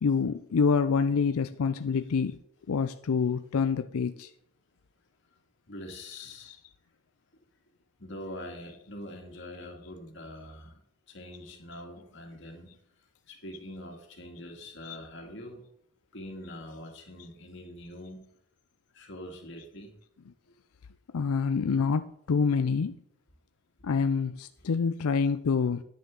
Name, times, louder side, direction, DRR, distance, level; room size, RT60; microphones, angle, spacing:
voice 1, 0.0-2.4 2.7-4.3 6.1-6.6 14.8-15.0 21.1-23.0 23.8-25.8, left 5 dB, 90° left, 10 dB, 0.4 m, -27 dB
voice 2, 5.7-6.6 8.0-10.8 11.1-12.7 13.3-15.6 16.1-18.3 18.9-19.9, left 1 dB, 55° left, 2 dB, 2.2 m, -44 dB
10.0 x 9.2 x 3.8 m, 0.69 s
head